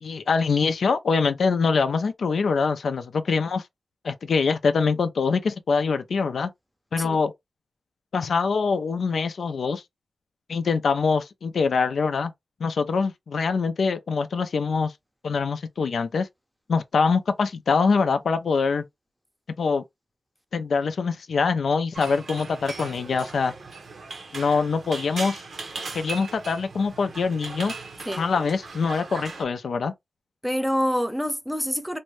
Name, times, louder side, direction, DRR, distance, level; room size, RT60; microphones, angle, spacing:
voice 1, 0.0-3.6 4.0-6.5 6.9-7.3 8.1-9.8 10.5-12.3 12.6-14.9 15.2-16.3 16.7-18.9 19.6-19.8 20.5-23.5 24.3-25.4 25.9-27.7 28.2-29.9, left 5 dB, 85° left, 0.4 m, -24 dB
sound 1, 21.9-29.4, right 3 dB, 75° right, 0.7 m, -38 dB
voice 2, 30.4-32.0, equal, 5° right, 0.6 m, -26 dB
2.5 x 2.1 x 3.1 m
wide cardioid pair, 90°, 0 cm